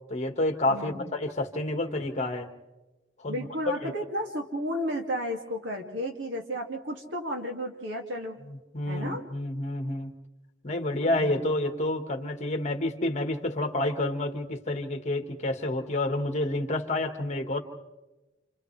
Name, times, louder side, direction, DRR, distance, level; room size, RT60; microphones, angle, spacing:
voice 1, 0.1-2.5 3.2-3.5 3.8-3.9 8.7-10.1 10.6-17.6, left 1 dB, 35° left, 5 dB, 1.6 m, -29 dB
voice 2, 0.7-1.1 3.3-8.4 8.9-9.2 11.0-11.5, equal, 75° right, 2 dB, 2.3 m, -33 dB
29.0 x 27.5 x 3.3 m, 1.1 s
head